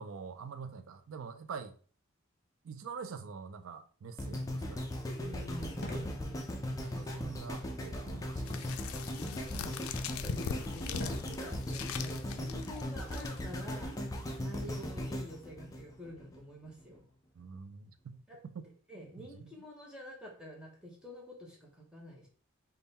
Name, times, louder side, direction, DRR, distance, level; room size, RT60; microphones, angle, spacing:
voice 1, 0.0-1.7 2.6-4.8 6.7-8.6 17.4-18.2 18.6-18.7 19.2-19.5, right 5 dB, 70° right, 0.4 m, -45 dB
sound 1, 4.2-16.4 16.9-17.0, left 1 dB, 15° left, 0.4 m, -38 dB
voice 2, 5.2-7.0 9.2-9.8 10.2-10.5 10.7-14.0 14.4-17.0 18.3-18.4 18.9-22.3, equal, 5° right, 0.8 m, -48 dB
Fireworks, 5.4-15.3, left 1 dB, 50° left, 1.0 m, -52 dB
sound 2, 8.5-13.7, left 6 dB, 80° left, 0.4 m, -41 dB
3.6 x 2.2 x 4.0 m
head